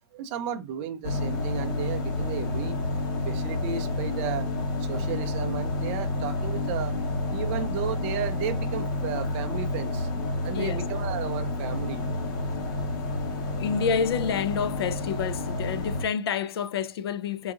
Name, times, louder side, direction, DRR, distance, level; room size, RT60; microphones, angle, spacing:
voice 1, 0.0-2.8 3.2-4.5 4.8-7.0 7.3-10.1 10.4-12.1, right 8 dB, 30° right, 0.4 m, -34 dB
sound 1, 1.0-16.1, left 2 dB, 45° left, 0.9 m, -29 dB
voice 2, 12.9-17.5, left 7 dB, 60° left, 0.5 m, -29 dB
3.8 x 2.6 x 2.4 m
hypercardioid pair, 150°, 14 cm